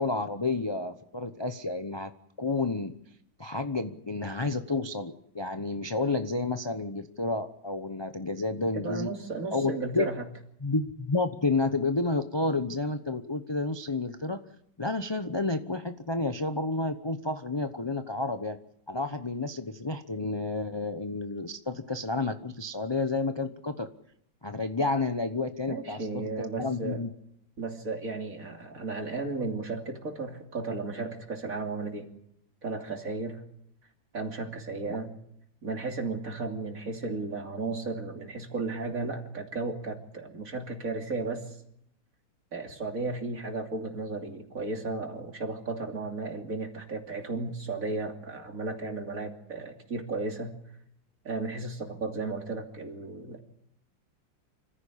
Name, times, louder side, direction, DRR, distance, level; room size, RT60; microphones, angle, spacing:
voice 1, 0.0-2.1 2.4-2.9 3.4-9.1 9.5-10.1 10.6-14.4 14.8-18.6 18.9-23.9 24.4-26.3 26.6-27.1 34.9-35.0, left 3 dB, 30° left, 8 dB, 0.4 m, -30 dB
voice 2, 8.7-10.2 25.6-27.0 27.6-32.1 32.6-33.4 34.1-35.1 35.6-41.6 42.5-50.5 51.2-53.4, right 3 dB, 45° right, 3 dB, 3.2 m, -34 dB
26.5 x 15.0 x 8.6 m, 0.75 s
omnidirectional pair, 2.1 m